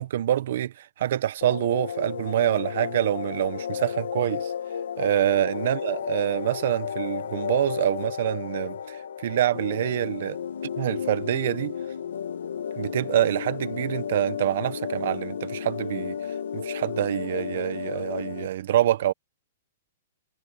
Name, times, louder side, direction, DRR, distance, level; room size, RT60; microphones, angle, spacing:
voice 1, 0.0-4.5 5.0-10.4 10.6-11.8 12.8-16.2 16.5-19.1, right 12 dB, 55° right, 1.2 m, -26 dB
sound 1, 1.4-18.5, left 8 dB, 90° left, 1.8 m, -33 dB
hypercardioid pair, 160°, 0 cm